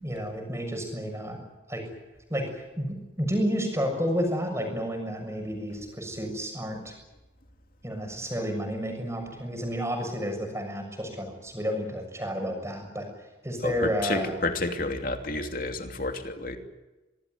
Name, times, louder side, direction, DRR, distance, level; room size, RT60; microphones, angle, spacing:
voice 1, 0.0-1.4 1.7-1.8 2.3-2.9 3.2-6.9 7.8-14.4, equal, 15° right, 3 dB, 6.8 m, -31 dB
voice 2, 13.6-16.6, left 2 dB, 45° left, 5 dB, 2.9 m, -30 dB
25.5 x 19.5 x 9.5 m, 1.1 s
head